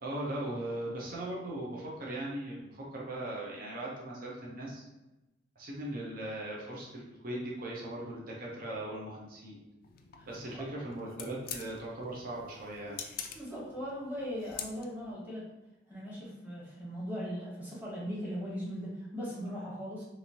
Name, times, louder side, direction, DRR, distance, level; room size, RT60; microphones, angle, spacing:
voice 1, 0.0-4.9 5.6-9.6 10.3-13.0, right 1 dB, 50° right, -4 dB, 0.7 m, -39 dB
sound 1, 9.8-15.1, left 7 dB, 50° left, 0.3 m, -46 dB
voice 2, 13.3-15.4 15.9-20.0, equal, 10° right, -7 dB, 1.1 m, -39 dB
3.0 x 2.6 x 2.8 m, 1.0 s
head